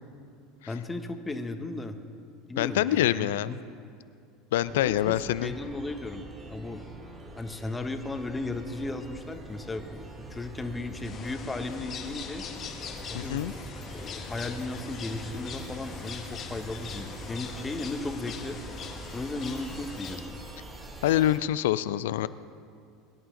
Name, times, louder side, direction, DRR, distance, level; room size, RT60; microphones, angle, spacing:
voice 1, 0.7-2.0 2.5-3.3 4.7-6.9 7.4-12.4 13.1-13.4 13.9-18.6 19.1-20.4, left 2 dB, 15° left, 7 dB, 1.2 m, -36 dB
voice 2, 2.6-3.6 4.5-5.5 13.1-13.5 21.0-22.3, left 13 dB, 70° left, 16 dB, 0.4 m, -25 dB
sound 1, 4.6-21.4, right 1 dB, 20° right, 3.1 m, -44 dB
sound 2, 11.0-20.2, left 6 dB, 40° left, 1.5 m, -42 dB
23.0 x 11.0 x 3.9 m, 2.4 s
hypercardioid pair, 80°, 0 cm